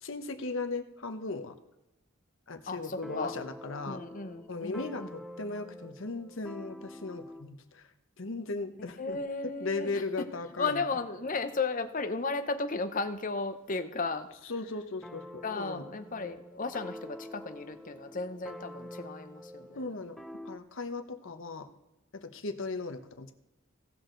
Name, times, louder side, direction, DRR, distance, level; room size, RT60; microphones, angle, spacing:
voice 1, 0.0-1.6 2.5-4.0 4.5-7.9 8.2-9.2 9.4-10.8 14.4-15.9 19.8-20.2 20.4-21.7 22.1-23.3, left 3 dB, 60° left, 7 dB, 1.0 m, -37 dB
voice 2, 2.7-3.3 3.9-5.1 9.0-10.3 10.6-14.3 15.4-19.9, left 3 dB, 40° left, 9 dB, 0.8 m, -35 dB
sound 1, 2.8-7.5 15.0-20.6, left 1 dB, ahead, 0.3 m, -46 dB
17.5 x 6.4 x 3.9 m, 0.97 s
head